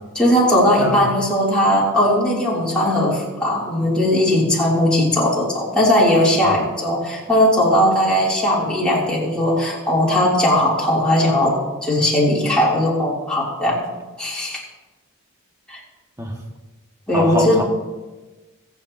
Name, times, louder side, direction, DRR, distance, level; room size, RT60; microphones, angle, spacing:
voice 1, 0.1-13.9 14.2-14.6 15.7-15.8 17.1-17.6, left 1 dB, 5° left, -7 dB, 3.3 m, -18 dB
voice 2, 17.1-17.6, equal, 15° right, 0 dB, 1.9 m, -24 dB
23.0 x 8.2 x 2.9 m, 1.2 s
head